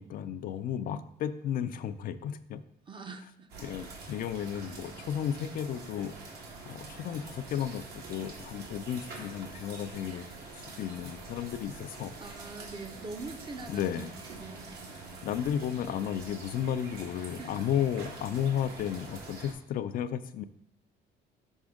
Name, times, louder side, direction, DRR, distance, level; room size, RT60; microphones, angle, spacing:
voice 1, 0.0-2.6 3.6-6.1 6.7-10.3 10.5-12.1 13.7-14.1 15.2-20.4, left 9 dB, 55° left, 11 dB, 0.4 m, -33 dB
voice 2, 2.6-3.5 4.6-4.8 12.2-15.0 17.2-17.9 18.6-18.7, right 3 dB, 30° right, 7 dB, 0.6 m, -45 dB
sound 1, 3.5-19.5, right 3 dB, 70° right, 1.4 m, -45 dB
6.3 x 4.9 x 3.6 m, 0.70 s
cardioid pair, 110°, 17 cm